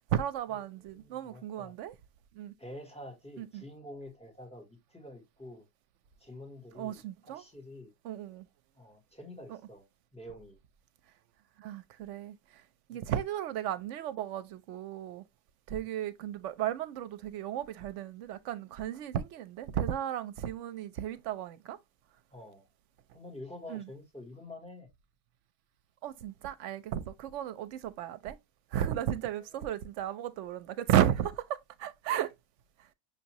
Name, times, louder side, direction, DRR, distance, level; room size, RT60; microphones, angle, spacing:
voice 1, 0.1-1.9 2.3-2.5 3.4-3.6 6.7-7.4 8.0-8.5 9.5-9.6 11.6-12.6 12.9-15.2 15.7-21.8 23.7-23.8 26.0-28.4 28.7-32.3, right 11 dB, 75° right, 0.9 m, -34 dB
voice 2, 0.9-1.7 2.6-5.6 6.2-7.9 8.7-9.8 10.1-10.6 12.9-13.1 22.3-22.7 23.1-24.9 29.4-29.8, left 1 dB, 5° left, 1.3 m, -48 dB
5.8 x 2.7 x 2.9 m
omnidirectional pair, 1.3 m